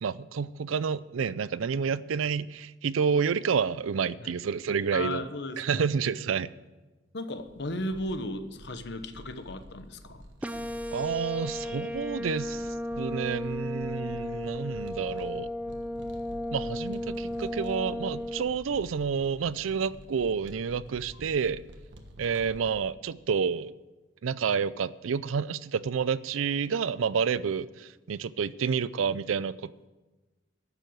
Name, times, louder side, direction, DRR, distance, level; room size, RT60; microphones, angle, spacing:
voice 1, 0.0-5.2 5.6-6.5 10.9-12.7 13.0-15.5 16.5-21.6 22.2-23.7 24.2-29.9, right 6 dB, 90° right, 18 dB, 0.4 m, -29 dB
voice 2, 4.9-5.8 7.1-10.2, left 1 dB, 60° left, 9 dB, 1.0 m, -35 dB
sound 1, 7.4-22.7, equal, 65° right, 1.4 m, -49 dB
sound 2, 10.4-18.4, left 1 dB, 5° right, 0.4 m, -34 dB
11.0 x 7.7 x 7.9 m, 1.1 s
head